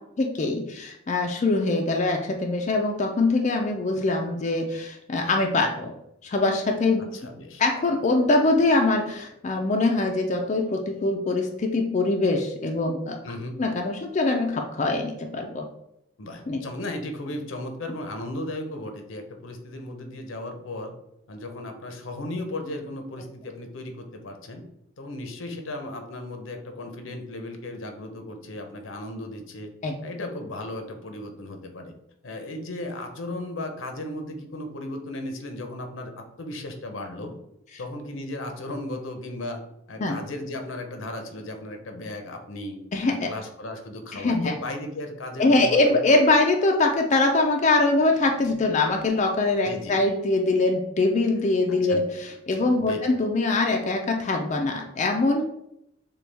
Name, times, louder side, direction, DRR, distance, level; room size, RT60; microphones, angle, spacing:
voice 1, 0.2-6.0 6.2-7.0 7.6-13.2 13.6-15.7 16.5-16.6 29.8-30.0 40.0-40.2 42.9-43.3 44.1-44.5 45.4-55.4, left 2 dB, 35° left, 2 dB, 0.4 m, -23 dB
voice 2, 7.1-7.6 13.2-13.6 16.2-20.9 21.3-24.6 25.0-29.7 30.0-31.9 32.2-36.1 36.4-37.4 37.8-39.6 39.9-42.8 43.1-46.0 49.7-50.0 51.8-52.0 52.8-53.1, left 1 dB, 80° left, 5 dB, 0.8 m, -35 dB
6.8 x 2.3 x 3.4 m, 0.82 s
head